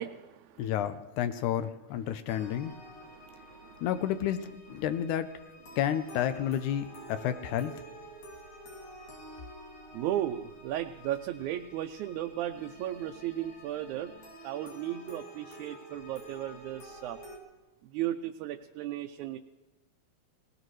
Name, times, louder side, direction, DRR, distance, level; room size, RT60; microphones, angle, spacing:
voice 1, 0.0-0.7 3.0-3.9 9.9-14.1 14.4-17.2 17.8-19.4, right 12 dB, 80° right, 5 dB, 2.0 m, -35 dB
voice 2, 0.6-2.7 3.8-4.4 4.7-5.3 5.8-7.8, left 10 dB, 90° left, 10 dB, 2.2 m, -30 dB
sound 1, 2.3-17.4, right 1 dB, 75° left, 4.1 m, -49 dB
19.0 x 18.5 x 3.2 m, 1.1 s
omnidirectional pair, 3.5 m